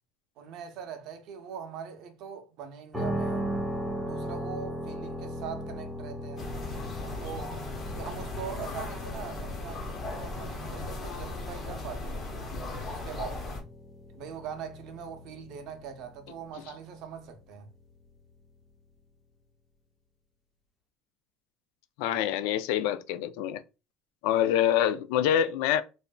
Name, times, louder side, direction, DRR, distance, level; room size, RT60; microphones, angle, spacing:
voice 1, 0.4-3.5 4.0-6.5 7.2-7.5 7.9-12.4 12.9-13.6 14.1-17.7, right 7 dB, 60° right, 0.6 m, -42 dB
sound 1, 2.9-18.8, equal, 5° right, 0.7 m, -39 dB
sound 2, 6.4-13.6, left 2 dB, 25° left, 0.8 m, -37 dB
voice 2, 22.0-23.6 24.2-25.8, left 10 dB, 90° left, 0.3 m, -26 dB
3.1 x 2.5 x 2.2 m
cardioid pair, 160°, 0 cm